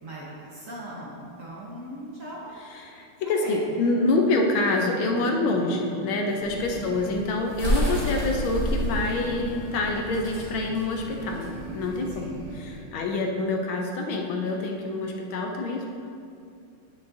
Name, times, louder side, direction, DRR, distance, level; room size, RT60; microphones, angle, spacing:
voice 1, 0.0-2.5 3.2-3.6 6.5-6.9 12.1-12.4, right 1 dB, 45° right, -6 dB, 1.3 m, -40 dB
voice 2, 2.7-15.9, left 2 dB, 75° left, 2 dB, 1.4 m, -26 dB
sound 1, 3.7-12.9, right 3 dB, 70° right, 1.1 m, -42 dB
sound 2, 6.4-12.8, equal, 90° right, 2.2 m, -44 dB
sound 3, 6.5-12.1, equal, 25° right, 1.7 m, -29 dB
9.5 x 6.4 x 2.7 m, 2.4 s
omnidirectional pair, 2.4 m